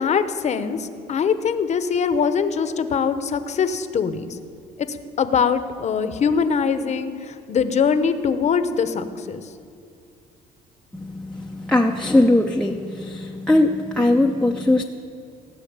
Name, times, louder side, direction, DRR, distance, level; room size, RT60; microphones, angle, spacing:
voice 1, 0.0-4.4 4.9-9.4, left 6 dB, 45° left, 10 dB, 0.9 m, -22 dB
voice 2, 10.9-14.8, left 1 dB, 5° left, 2 dB, 0.6 m, -20 dB
17.0 x 6.4 x 8.7 m, 2.4 s
cardioid pair, 110°, 17 cm